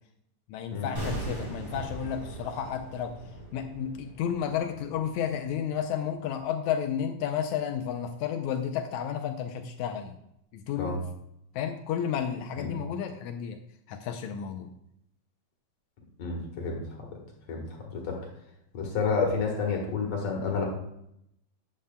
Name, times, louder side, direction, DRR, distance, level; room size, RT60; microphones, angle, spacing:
voice 1, 0.5-3.1 3.5-10.2 10.5-11.0 11.6-13.6 13.9-14.7, left 8 dB, 80° left, 6 dB, 1.8 m, -32 dB
sound 1, 1.0-6.0 6.2-6.4, right 1 dB, 80° right, 5.1 m, -39 dB
voice 2, 16.2-16.8 17.5-18.2 18.7-20.6, left 4 dB, 60° left, 0 dB, 2.3 m, -30 dB
11.0 x 8.6 x 2.2 m, 0.78 s
omnidirectional pair, 3.6 m